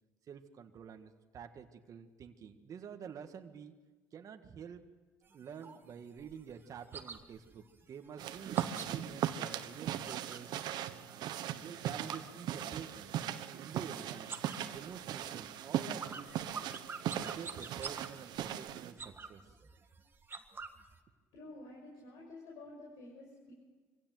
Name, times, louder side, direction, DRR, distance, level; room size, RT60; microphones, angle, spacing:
voice 1, 0.3-3.8 4.1-4.9 5.3-10.6 11.1-13.1 13.6-14.4 14.7-16.5 17.1-19.5, right 7 dB, 45° right, 6 dB, 1.7 m, -49 dB
sound 1, 5.2-10.6 10.9-13.0 13.3-13.9 14.2-21.0, right 5 dB, 25° right, 1.8 m, -48 dB
sound 2, 8.2-18.9, right 11 dB, 65° right, 1.3 m, -39 dB
voice 2, 21.3-23.5, left 2 dB, 70° left, -2 dB, 6.1 m, -50 dB
24.5 x 16.5 x 7.8 m, 1.4 s
supercardioid pair, 90°, 8 cm